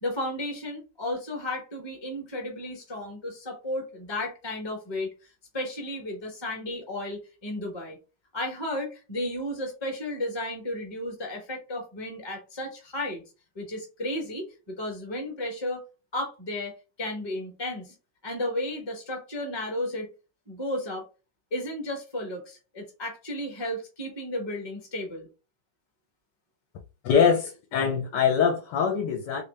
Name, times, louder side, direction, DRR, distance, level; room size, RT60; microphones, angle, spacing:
voice 1, 0.0-5.1 5.5-8.0 8.3-13.2 13.5-15.8 16.1-17.9 18.2-20.1 20.5-21.1 21.5-25.3, left 1 dB, 20° left, 0.8 m, -33 dB
voice 2, 27.0-29.4, left 6 dB, 75° left, 1.2 m, -23 dB
3.2 x 2.7 x 3.3 m
omnidirectional pair, 2.0 m